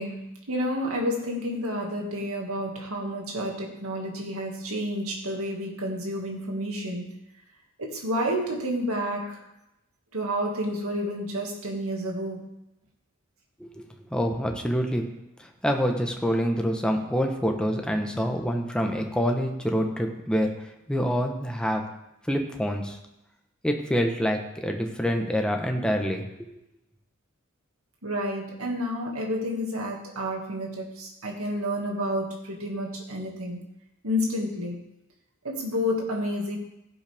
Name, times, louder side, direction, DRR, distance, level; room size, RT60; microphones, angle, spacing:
voice 1, 0.0-7.1 7.8-9.4 10.1-12.5 28.0-33.6 34.0-34.8 35.4-36.6, equal, 80° right, 0 dB, 2.3 m, -30 dB
voice 2, 14.1-15.0 15.4-20.5 20.9-21.8 22.3-23.0 23.6-26.5, equal, 5° left, 3 dB, 1.1 m, -26 dB
16.0 x 8.6 x 3.6 m, 0.89 s
head